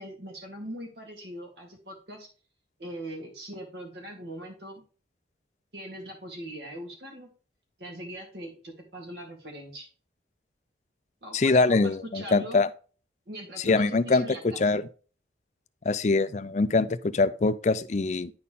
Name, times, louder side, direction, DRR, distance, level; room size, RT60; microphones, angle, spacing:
voice 1, 0.0-2.3 2.8-4.8 5.7-7.3 7.8-9.9 11.2-12.6 13.3-14.8, right 1 dB, 65° right, 2.1 m, -41 dB
voice 2, 11.3-12.7 13.6-14.3 14.6-14.8 15.8-18.3, left 3 dB, 40° left, 0.4 m, -23 dB
10.5 x 4.3 x 3.6 m
head